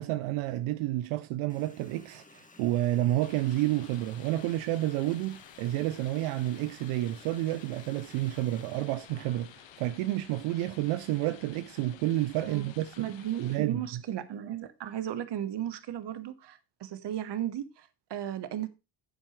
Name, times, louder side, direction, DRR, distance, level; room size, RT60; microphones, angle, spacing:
voice 1, 0.0-13.1 13.4-14.0, right 15 dB, 90° right, 0.7 m, -30 dB
Water tap faucet, 1.5-10.0, left 3 dB, 15° left, 1.6 m, -56 dB
sound 1, 3.2-13.6, left 11 dB, 65° left, 1.2 m, -53 dB
voice 2, 12.5-18.7, right 11 dB, 60° right, 1.3 m, -35 dB
10.0 x 7.5 x 3.2 m
supercardioid pair, 80°, 48 cm